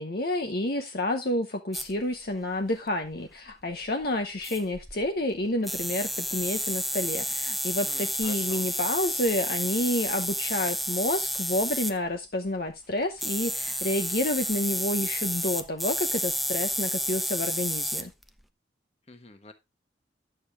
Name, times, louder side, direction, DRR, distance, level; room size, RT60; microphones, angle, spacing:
voice 1, 0.0-18.1, left 1 dB, 50° left, 0.9 m, -29 dB
sound 1, 1.7-1.9 4.0-4.1 4.4-5.1 5.6-12.0 13.2-18.3, equal, ahead, 0.4 m, -31 dB
voice 2, 7.8-8.7 19.1-19.5, left 3 dB, 35° left, 1.3 m, -46 dB
11.0 x 6.7 x 3.5 m
head